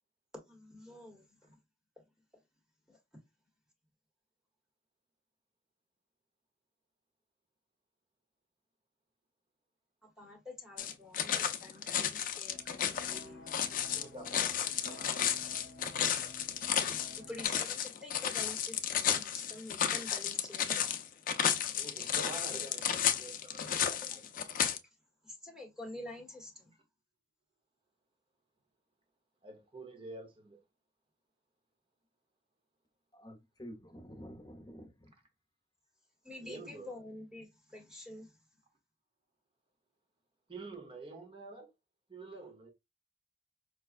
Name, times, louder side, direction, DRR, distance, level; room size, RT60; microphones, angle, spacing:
voice 1, 0.5-1.6 2.9-3.0 10.0-13.5 16.9-21.0 25.2-26.7 36.2-38.4, left 2 dB, 5° right, 1.1 m, -48 dB
sound 1, 10.8-24.8, left 9 dB, 50° left, 0.5 m, -33 dB
sound 2, 12.5-17.5, left 2 dB, 90° left, 0.7 m, -52 dB
voice 2, 13.8-15.2 21.7-24.6 29.4-30.6 36.4-36.9 40.5-41.7 42.1-42.7, right 2 dB, 30° right, 0.9 m, -48 dB
voice 3, 33.1-35.1, equal, 25° left, 0.9 m, -49 dB
5.0 x 2.2 x 2.4 m
head